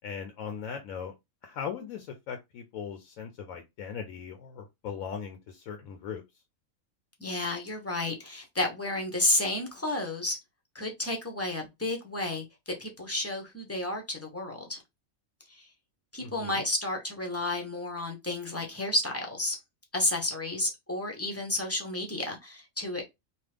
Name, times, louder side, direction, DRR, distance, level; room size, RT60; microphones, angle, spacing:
voice 1, 0.0-1.1 1.4-6.2 16.2-16.6, left 7 dB, 80° left, 1.0 m, -39 dB
voice 2, 7.2-10.4 10.7-14.8 15.5-15.7 16.1-19.6 19.9-23.0, left 1 dB, 15° left, 0.5 m, -31 dB
2.9 x 2.2 x 3.3 m
omnidirectional pair, 1.4 m